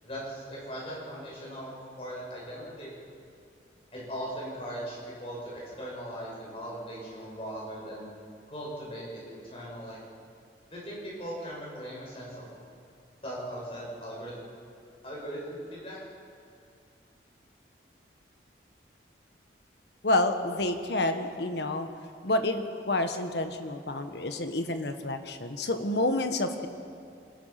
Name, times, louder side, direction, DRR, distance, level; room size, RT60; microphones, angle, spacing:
voice 1, 0.0-2.9 3.9-8.1 8.5-10.0 10.7-12.4 13.2-14.3 15.0-16.0, equal, 30° left, -5 dB, 6.9 m, -39 dB
voice 2, 20.0-21.9 22.2-26.7, left 2 dB, 65° left, 7 dB, 1.5 m, -29 dB
25.5 x 19.5 x 5.9 m, 2.4 s
head